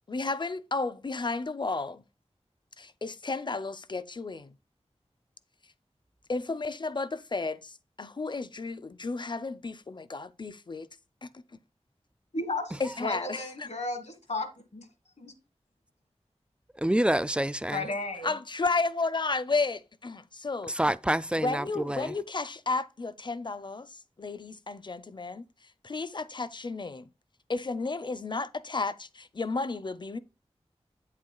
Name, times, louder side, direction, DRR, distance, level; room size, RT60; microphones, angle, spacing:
voice 1, 0.1-2.0 2.8-4.5 6.3-10.9 11.2-11.3 12.8-13.7 18.2-20.7 21.4-25.4 25.8-27.0 27.5-30.2, left 3 dB, 40° left, 0.5 m, -32 dB
voice 2, 12.3-14.9 15.2-15.3 17.7-18.3, left 2 dB, 75° left, 1.5 m, -34 dB
voice 3, 16.8-17.9 20.7-22.1, right 1 dB, 10° right, 0.3 m, -27 dB
8.3 x 7.4 x 2.3 m
wide cardioid pair, 60°, 12 cm